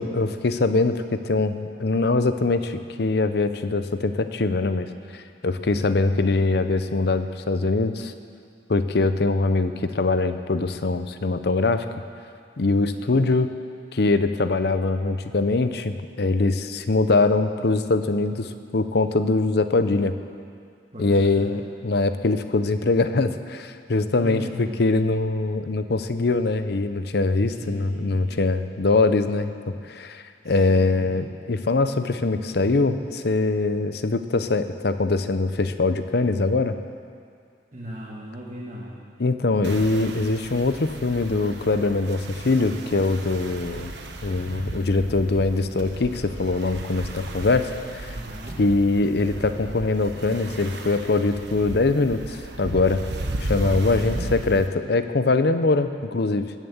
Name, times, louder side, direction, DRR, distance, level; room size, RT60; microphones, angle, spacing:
voice 1, 0.0-4.9 5.1-8.1 8.7-11.9 12.6-13.5 13.9-20.1 21.0-29.5 29.8-36.8 39.2-43.9 44.2-48.2 48.6-53.0 53.4-56.5, left 3 dB, 65° left, 10 dB, 0.7 m, -23 dB
voice 2, 5.8-6.1 13.0-13.2 20.9-21.5 24.2-24.8 27.5-28.4 30.4-31.2 37.7-39.0 48.0-48.6 53.8-54.3, equal, 40° right, -6 dB, 1.8 m, -38 dB
sound 1, 39.6-54.7, right 2 dB, 75° right, 1.1 m, -35 dB
19.0 x 7.4 x 7.1 m, 2.3 s
head